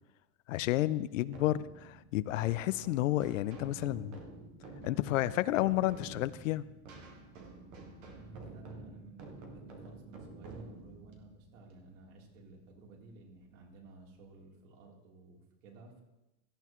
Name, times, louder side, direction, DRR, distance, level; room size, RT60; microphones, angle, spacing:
voice 1, 0.5-4.2 4.8-6.7, left 15 dB, 60° left, 16 dB, 0.5 m, -31 dB
sound 1, 1.2-12.6, right 3 dB, 15° right, 0.3 m, -50 dB
voice 2, 8.2-16.0, right 3 dB, 60° right, -1 dB, 3.5 m, -55 dB
16.5 x 13.5 x 3.1 m, 0.97 s
supercardioid pair, 170°, 44 cm